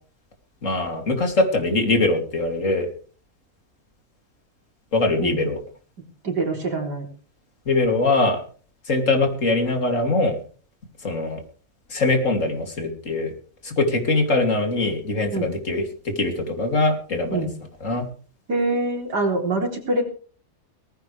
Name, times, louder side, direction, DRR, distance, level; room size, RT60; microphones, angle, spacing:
voice 1, 0.6-2.9 4.9-5.6 7.7-8.4 8.9-10.4 11.0-11.4 11.9-13.3 13.6-17.5 17.8-18.0, left 2 dB, 50° left, 4 dB, 3.3 m, -22 dB
voice 2, 6.2-7.1 15.3-15.5 17.3-17.5 18.5-20.0, right 2 dB, 90° right, 2 dB, 4.3 m, -24 dB
18.5 x 15.5 x 3.4 m, 0.41 s
omnidirectional pair, 1.7 m